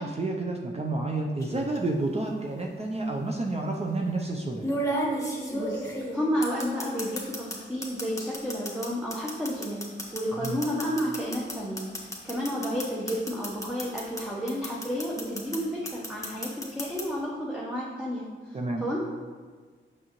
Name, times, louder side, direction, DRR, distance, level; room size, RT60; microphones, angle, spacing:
voice 1, 0.0-4.8 10.4-10.6 18.5-18.9, right 2 dB, 30° right, 1 dB, 0.6 m, -30 dB
sound 1, 1.4-1.8 3.0-3.1 4.6-7.6 7.8-14.2 14.5-15.6 15.9-17.0, equal, 15° left, 1.4 m, -32 dB
voice 2, 5.5-9.9 10.1-19.1, equal, 5° right, -5 dB, 1.0 m, -31 dB
6.2 x 6.1 x 3.1 m, 1.5 s
cardioid pair, 70°, 21 cm